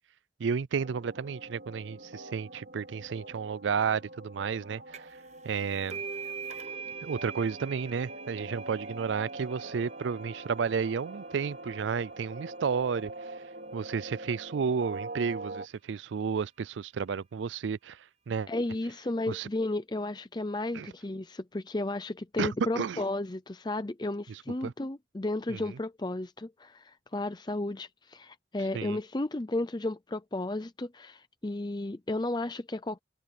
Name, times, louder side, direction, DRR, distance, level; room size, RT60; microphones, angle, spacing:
voice 1, 0.4-4.8 5.4-6.0 7.0-13.1 13.7-18.0 18.3-18.5 19.3-19.5 20.7-20.9 22.4-22.5 22.8-23.0 24.6-24.7 25.5-25.6 28.7-29.0, right 6 dB, 80° right, 0.4 m, -32 dB
sound 1, 0.7-15.7, right 2 dB, 65° right, 3.4 m, -44 dB
sound 2, 4.9-5.2 5.5-12.8, right 6 dB, 35° right, 0.9 m, -44 dB
voice 2, 18.5-33.0, left 2 dB, 25° left, 0.6 m, -33 dB
head